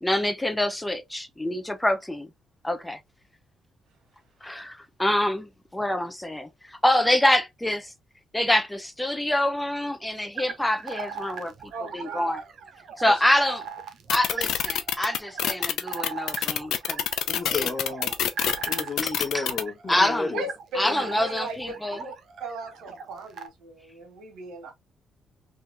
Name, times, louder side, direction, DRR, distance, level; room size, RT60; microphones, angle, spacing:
voice 1, 0.0-2.3 2.6-3.0 4.4-7.9 8.3-12.4 13.0-13.6 14.1-17.0 17.5-17.7 19.0-19.4 19.9-20.3 20.8-22.0, left 1 dB, 10° left, 0.6 m, -26 dB
sound 1, 10.3-23.5, right 6 dB, 65° right, 0.7 m, -39 dB
voice 2, 11.7-12.5 13.0-13.2 20.3-22.1 22.4-24.7, right 2 dB, 85° right, 1.7 m, -37 dB
sound 2, 14.1-19.6, left 10 dB, 80° left, 0.5 m, -26 dB
voice 3, 17.3-18.1 18.6-20.4 20.8-21.2, left 4 dB, 45° left, 1.2 m, -32 dB
3.6 x 2.7 x 2.5 m
cardioid pair, 90°, 0 cm